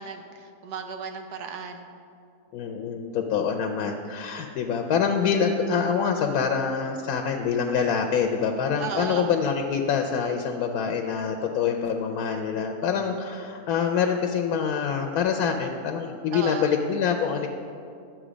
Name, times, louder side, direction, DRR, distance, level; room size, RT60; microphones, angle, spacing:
voice 1, 0.0-1.9 8.8-9.3 16.3-16.7, right 6 dB, 85° right, 6 dB, 1.4 m, -35 dB
voice 2, 2.5-17.5, left 6 dB, 75° left, 4 dB, 1.1 m, -25 dB
11.0 x 7.6 x 5.0 m, 2.4 s
omnidirectional pair, 1.7 m